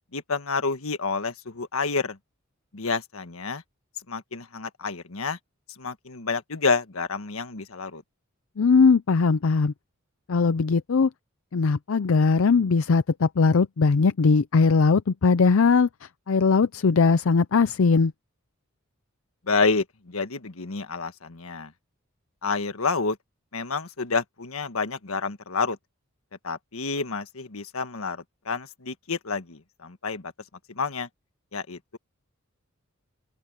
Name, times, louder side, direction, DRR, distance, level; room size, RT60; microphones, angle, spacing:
voice 1, 0.1-2.2 2.7-3.6 4.1-5.4 5.8-8.0 19.5-21.7 22.4-23.2 23.5-25.8 26.4-30.3 30.7-31.1 31.5-32.0, left 4 dB, 85° left, 1.5 m, -29 dB
voice 2, 8.6-9.7 10.3-11.1 11.5-18.1, left 4 dB, 70° left, 0.5 m, -20 dB
open air
head